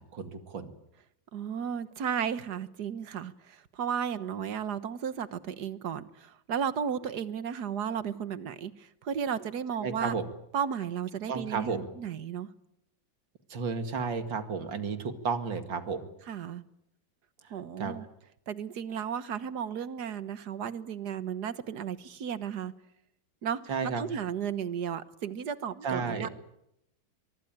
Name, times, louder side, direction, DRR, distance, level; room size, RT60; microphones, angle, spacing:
voice 1, 0.1-0.7 9.8-10.2 11.3-11.9 13.5-16.0 17.8-18.0 23.7-24.0 25.8-26.3, right 5 dB, 75° right, 2.8 m, -32 dB
voice 2, 1.3-10.2 10.5-12.5 16.3-16.6 17.5-18.1 18.5-22.7 23.4-26.3, right 8 dB, 60° right, 1.7 m, -34 dB
24.0 x 23.0 x 8.9 m
omnidirectional pair, 2.0 m